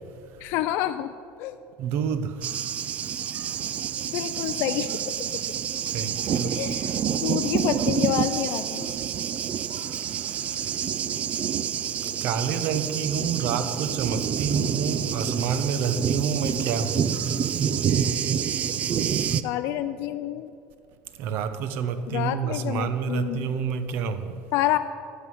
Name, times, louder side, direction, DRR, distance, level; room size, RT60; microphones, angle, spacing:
voice 1, 0.4-1.6 4.1-5.0 6.4-8.9 19.4-20.5 22.1-23.5 24.5-24.8, left 13 dB, 55° left, 0.4 m, -28 dB
voice 2, 1.8-2.9 5.9-6.6 9.7-10.7 11.9-17.2 21.1-24.4, right 6 dB, 50° right, 0.8 m, -29 dB
Thunder, 2.4-19.4, right 8 dB, 30° right, 0.4 m, -28 dB
11.0 x 6.5 x 9.3 m
cardioid pair, 170°, 5 cm